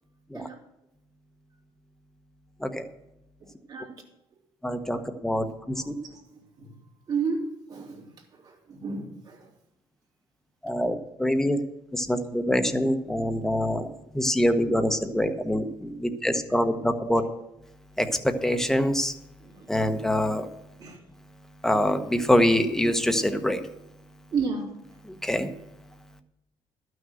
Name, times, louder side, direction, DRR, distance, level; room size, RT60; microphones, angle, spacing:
voice 1, 3.7-4.0 5.8-6.2 6.6-6.7 7.1-9.5 17.1-17.2 19.4-19.7 20.8-21.0 24.3-24.7, right 5 dB, 40° right, 0 dB, 3.0 m, -33 dB
voice 2, 4.6-5.0 5.2-5.9 10.6-11.6 11.9-13.9 14.1-17.2 18.0-19.1 19.7-20.5 21.6-23.6 25.2-25.5, equal, 5° left, 7 dB, 0.9 m, -25 dB
12.0 x 6.3 x 7.7 m, 0.89 s
cardioid pair, 140°, 10 cm